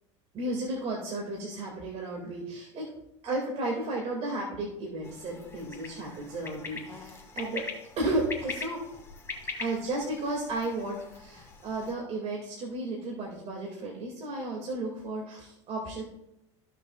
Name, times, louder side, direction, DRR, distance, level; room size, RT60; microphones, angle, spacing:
voice 1, 0.3-2.9 3.2-7.6 8.0-8.8 9.6-16.0, right 2 dB, 45° right, -1 dB, 2.3 m, -33 dB
sound 1, 5.0-11.9, left 4 dB, 15° left, 2.1 m, -42 dB
15.0 x 6.5 x 2.4 m, 0.85 s
hypercardioid pair, 95°, 16 cm